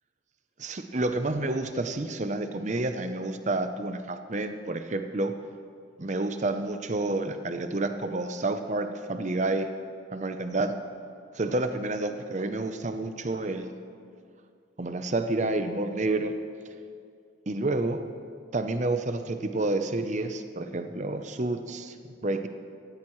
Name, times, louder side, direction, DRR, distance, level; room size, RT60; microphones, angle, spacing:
voice 1, 0.6-5.3 6.0-9.7 10.1-10.7 11.3-13.7 14.8-16.3 17.5-18.0 18.5-21.9 22.2-22.5, right 2 dB, 35° right, 8 dB, 0.7 m, -29 dB
17.0 x 14.5 x 3.2 m, 2.2 s
head